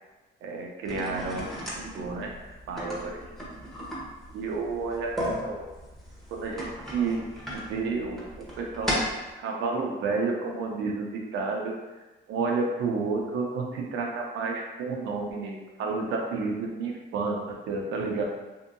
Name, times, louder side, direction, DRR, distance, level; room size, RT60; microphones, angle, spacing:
voice 1, 0.4-1.5 1.9-2.3 2.7-3.2 4.3-5.7 6.3-7.3 7.5-9.1 9.4-11.8 12.3-18.2, right 4 dB, 85° right, 0 dB, 0.6 m, -30 dB
sound 1, 0.9-9.3, equal, ahead, 0.8 m, -36 dB
2.7 x 2.7 x 2.5 m, 1.2 s
cardioid pair, 90°, 20 cm